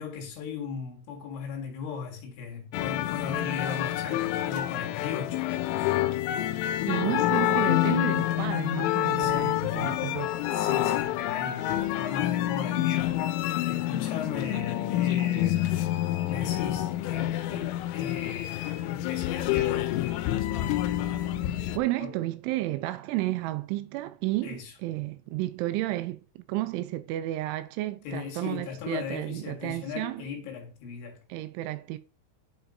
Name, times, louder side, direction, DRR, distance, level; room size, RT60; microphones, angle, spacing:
voice 1, 0.0-6.0 6.3-6.7 7.0-7.7 9.2-9.8 10.5-13.4 13.7-15.9 16.3-20.2 22.0-22.1 24.4-24.7 28.0-31.2, left 6 dB, 70° left, 3.8 m, -37 dB
sound 1, 2.7-21.8, left 14 dB, 90° left, 3.2 m, -28 dB
voice 2, 6.9-10.4 21.8-30.3 31.3-32.0, right 16 dB, 85° right, 2.9 m, -32 dB
10.0 x 5.8 x 2.7 m
omnidirectional pair, 5.7 m